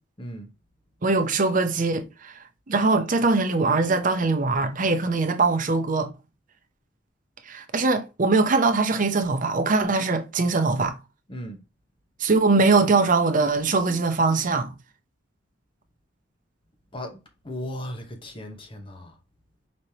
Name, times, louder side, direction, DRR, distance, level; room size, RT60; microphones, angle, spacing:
voice 1, 0.2-0.5 11.3-11.6 16.9-17.2 17.4-19.1, equal, 30° left, 1.0 m, -36 dB
voice 2, 1.0-2.3 2.7-6.1 7.5-10.9 12.2-14.7, right 3 dB, 45° right, 0.7 m, -22 dB
5.1 x 3.1 x 2.8 m
head